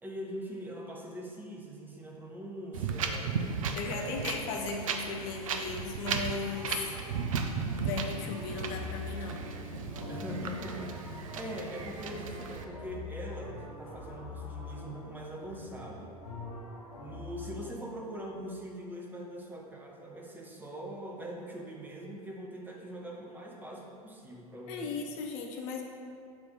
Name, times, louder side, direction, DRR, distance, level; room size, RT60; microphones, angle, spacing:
voice 1, 0.0-3.3 3.9-4.2 5.3-5.5 10.1-16.1 17.0-25.0, right 1 dB, 10° right, -2 dB, 0.8 m, -42 dB
Wind, 2.7-12.6, right 5 dB, 60° right, 0.5 m, -36 dB
voice 2, 3.7-6.9 7.8-9.4 24.7-25.8, left 4 dB, 40° left, 1 dB, 0.6 m, -37 dB
sound 1, 6.4-17.7, left 3 dB, 75° left, 0.8 m, -44 dB
6.9 x 2.9 x 5.2 m, 2.4 s
figure-of-eight pair, 85°, 19 cm